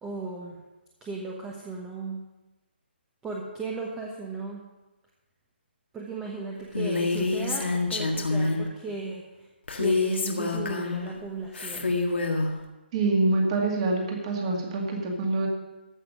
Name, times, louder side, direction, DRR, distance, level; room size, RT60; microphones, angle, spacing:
voice 1, 0.0-0.6 1.0-2.2 3.2-4.6 5.9-9.5 9.7-12.0, right 3 dB, 10° right, -2 dB, 1.0 m, -36 dB
Female speech woman speaking, 6.7-8.7 9.7-11.1 11.5-12.5, left 3 dB, 80° left, 1.8 m, -27 dB
voice 2, 12.9-15.5, right 2 dB, 30° right, 0 dB, 2.2 m, -25 dB
14.5 x 5.9 x 6.6 m, 1.1 s
hypercardioid pair, 160°, 6 cm